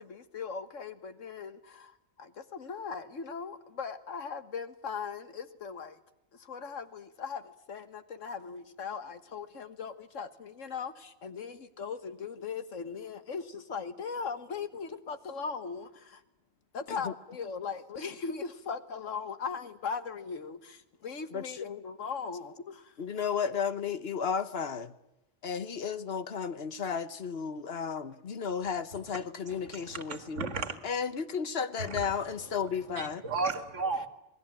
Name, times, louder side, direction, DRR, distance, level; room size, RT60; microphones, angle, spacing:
voice 1, 0.0-6.0 6.4-16.2 16.7-22.9, left 5 dB, 90° left, 1.8 m, -39 dB
voice 2, 23.0-24.9 25.4-30.5 30.8-33.2, left 6 dB, 55° left, 1.3 m, -33 dB
voice 3, 29.5-30.8 31.8-32.1 33.0-34.1, right 4 dB, 75° right, 2.2 m, -34 dB
27.5 x 19.5 x 8.8 m
omnidirectional pair, 1.3 m